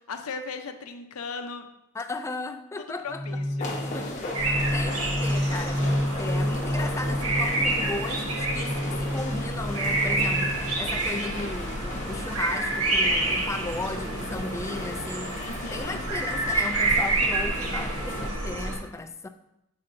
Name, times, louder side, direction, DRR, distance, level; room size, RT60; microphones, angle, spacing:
voice 1, 0.1-1.6 3.0-3.7 15.4-16.0, left 4 dB, 75° left, 7 dB, 0.6 m, -37 dB
voice 2, 1.9-3.2 3.9-19.3, left 2 dB, 15° left, 6 dB, 0.4 m, -36 dB
sound 1, 3.1-11.0, equal, 45° right, 1.2 m, -30 dB
sound 2, 3.6-18.3, left 1 dB, 35° left, 0.9 m, -36 dB
sound 3, 4.4-18.8, right 2 dB, 80° right, 1.1 m, -29 dB
7.6 x 5.5 x 2.6 m, 0.83 s
head